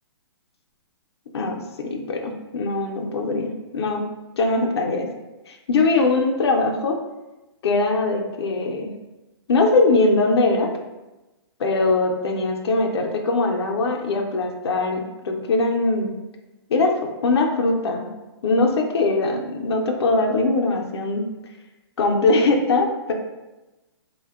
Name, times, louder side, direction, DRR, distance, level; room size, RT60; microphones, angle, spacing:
voice 1, 1.3-4.0 4.4-5.1 5.5-7.0 7.6-8.9 9.5-10.7 11.6-16.1 16.7-17.0 17.2-18.1 18.4-21.3 22.0-23.1, left 3 dB, 75° left, 2 dB, 0.4 m, -21 dB
2.6 x 2.1 x 2.3 m, 1.1 s
hypercardioid pair, 140°, 14 cm